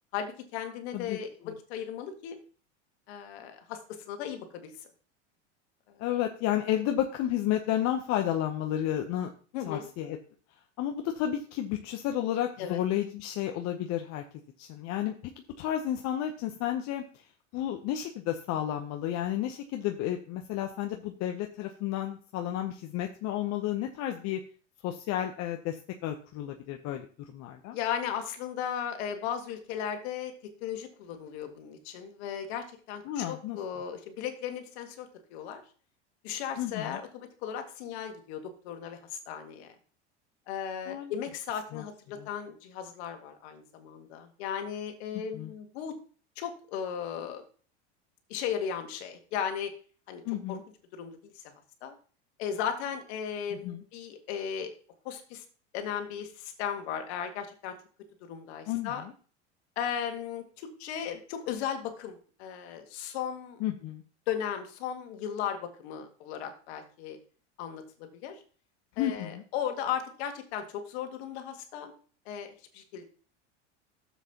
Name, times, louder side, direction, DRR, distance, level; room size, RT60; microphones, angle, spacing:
voice 1, 0.1-2.4 3.1-4.7 5.9-6.0 9.5-9.9 12.6-12.8 27.7-30.3 30.6-35.6 36.2-39.7 40.5-46.0 46.4-47.4 48.3-49.7 50.1-50.2 50.5-50.6 50.9-51.4 51.8-52.0 52.4-54.7 55.0-55.4 55.7-57.7 58.2-59.1 59.8-63.6 64.3-67.2 67.6-68.4 69.0-71.9 72.3-73.0, left 8 dB, 65° left, 6 dB, 1.9 m, -36 dB
voice 2, 6.0-9.3 9.7-10.2 10.8-14.2 14.6-15.1 15.6-17.0 17.5-24.4 24.8-25.8 26.0-27.1 27.3-27.8 33.1-33.6 36.6-37.0 40.9-41.1 41.7-41.8 42.2-42.3 45.3-45.5 50.2-50.6 53.6-53.8 58.7-59.1 63.6-64.0 69.0-69.4, left 11 dB, 50° left, 4 dB, 0.9 m, -31 dB
12.0 x 7.4 x 2.9 m, 0.41 s
hypercardioid pair, 85°, 35 cm